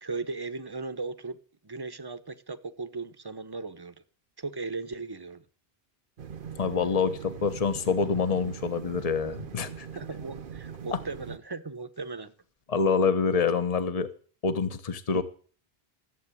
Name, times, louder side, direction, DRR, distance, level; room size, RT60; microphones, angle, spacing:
voice 1, 0.0-1.4 1.6-3.9 4.4-5.4 9.9-12.3, right 3 dB, 25° right, 1.0 m, -37 dB
sound 1, 6.2-11.4, right 7 dB, 60° right, 1.0 m, -41 dB
voice 2, 6.6-9.9 10.9-11.0 12.7-14.1 14.4-15.2, left 5 dB, 35° left, 1.2 m, -26 dB
15.0 x 8.1 x 9.8 m
omnidirectional pair, 1.0 m